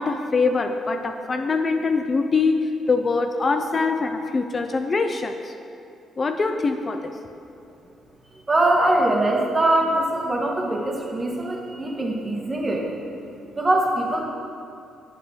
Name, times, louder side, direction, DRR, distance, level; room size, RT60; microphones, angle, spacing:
voice 1, 0.0-5.5 6.2-7.1, left 4 dB, 35° left, 6 dB, 0.5 m, -23 dB
voice 2, 8.5-12.8 13.6-14.2, right 1 dB, 20° right, -1 dB, 1.6 m, -22 dB
8.4 x 5.9 x 6.5 m, 2.6 s
cardioid pair, 90°, 0 cm